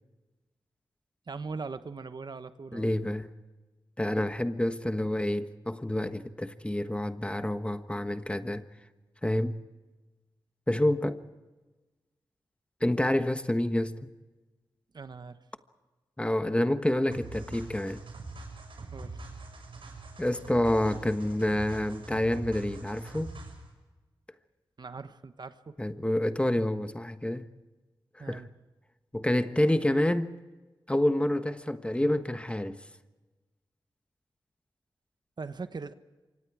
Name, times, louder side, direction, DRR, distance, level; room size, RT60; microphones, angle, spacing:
voice 1, 1.3-2.9 14.9-15.4 18.9-19.2 24.8-25.8 28.2-28.5 35.4-35.9, right 4 dB, 55° right, 1.2 m, -40 dB
voice 2, 2.7-3.3 4.0-8.7 9.2-9.6 10.7-11.2 12.8-14.1 16.2-18.0 20.2-23.3 25.8-27.5 28.1-28.5 29.1-30.3 30.9-32.8, left 1 dB, 15° left, 1.3 m, -28 dB
sound 1, 17.1-23.7, right 3 dB, 80° right, 6.6 m, -43 dB
27.5 x 25.0 x 4.9 m
wide cardioid pair, 75°, 9 cm